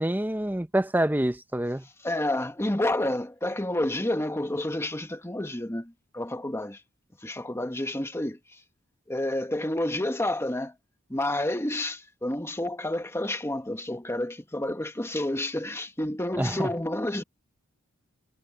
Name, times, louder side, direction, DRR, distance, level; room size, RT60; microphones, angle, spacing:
voice 1, 0.0-1.9 16.4-16.7, right 1 dB, 10° right, 0.7 m, -26 dB
voice 2, 2.0-6.8 7.2-8.6 9.1-10.7 11.1-17.2, left 1 dB, 10° left, 1.5 m, -29 dB
head